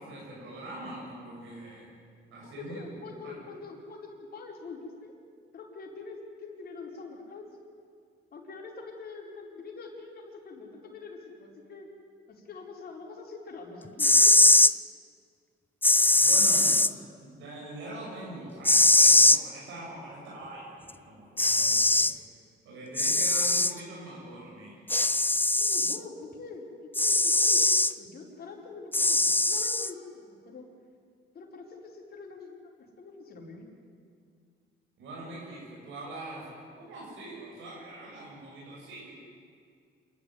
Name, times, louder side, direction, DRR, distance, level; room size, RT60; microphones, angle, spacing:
voice 1, 0.0-1.9 2.3-3.0 3.2-3.4 16.2-22.1 22.6-24.9 35.0-36.5 36.8-39.1, right 1 dB, 85° right, -4 dB, 7.3 m, -43 dB
voice 2, 2.4-5.2 5.5-7.5 8.3-11.9 12.3-14.4 25.5-30.7 31.3-33.7, left 4 dB, 50° left, -1 dB, 4.9 m, -44 dB
sound 1, 13.9-14.7 15.8-16.9 18.7-19.4 20.9-21.0 21.4-22.1 23.0-23.7 24.9-26.0 26.9-27.9 28.9-29.9, left 2 dB, 10° left, 0.6 m, -21 dB
27.5 x 11.5 x 9.7 m, 2.1 s
cardioid pair, 90°, 20 cm